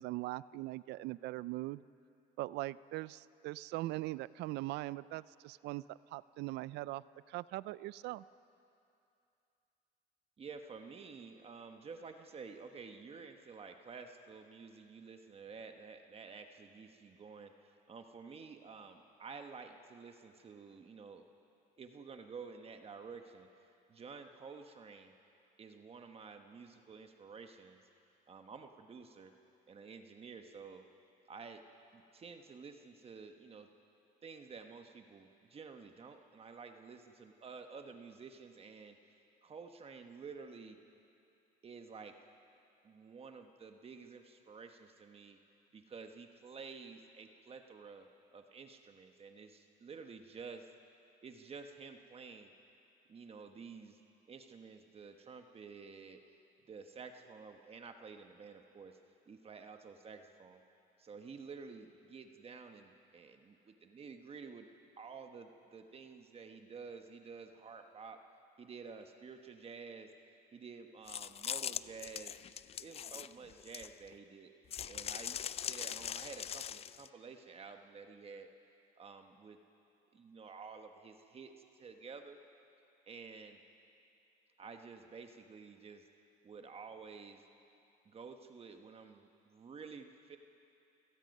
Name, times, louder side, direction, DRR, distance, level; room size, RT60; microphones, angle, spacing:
voice 1, 0.0-1.8 2.4-8.2, right 18 dB, 85° right, 19 dB, 0.4 m, -41 dB
voice 2, 10.4-21.2 21.8-25.1 25.6-27.8 28.3-29.3 29.7-30.8 31.3-31.6 31.9-33.7 34.2-40.8 41.6-42.2 42.8-45.4 45.7-50.7 51.2-52.5 53.1-54.0 54.3-56.4 56.7-59.0 59.3-60.6 61.0-64.7 65.0-68.2 68.6-70.1 70.5-72.4 72.8-74.5 74.9-78.5 79.0-79.6 80.1-82.4 83.0-83.6 84.6-86.1 86.4-87.4 88.0-90.4, right 5 dB, 35° right, 6 dB, 1.1 m, -51 dB
Taking snacks from the package and eating the snacks, 71.1-74.1 74.7-77.1, left 9 dB, 35° left, 0.4 m, -41 dB
29.0 x 17.5 x 5.4 m, 2.7 s
cardioid pair, 110°, 17 cm